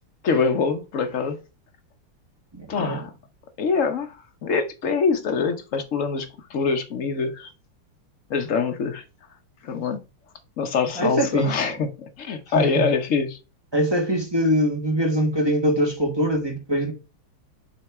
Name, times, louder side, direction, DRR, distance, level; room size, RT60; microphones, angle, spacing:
voice 1, 0.2-1.4 2.7-3.1 3.6-4.2 4.4-7.5 8.3-9.0 9.6-10.0 10.6-13.4, left 5 dB, 55° left, 0.8 m, -24 dB
voice 2, 2.5-3.0 11.0-11.5 12.5-12.9 13.7-16.9, equal, 20° right, 0.7 m, -23 dB
7.4 x 3.5 x 4.7 m
omnidirectional pair, 2.4 m